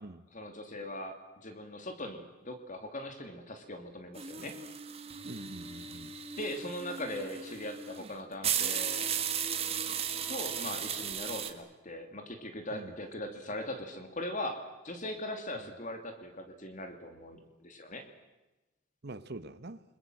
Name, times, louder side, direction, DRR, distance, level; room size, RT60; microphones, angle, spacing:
voice 1, 0.3-1.2 1.4-4.6 6.4-9.1 10.3-18.0, left 1 dB, 35° left, 2.5 m, -40 dB
sound 1, 4.2-11.5, right 8 dB, 25° right, 1.7 m, -36 dB
voice 2, 5.3-6.1 12.7-13.0 15.5-15.7 19.0-19.8, right 2 dB, 50° right, 1.0 m, -45 dB
29.0 x 22.0 x 7.8 m
head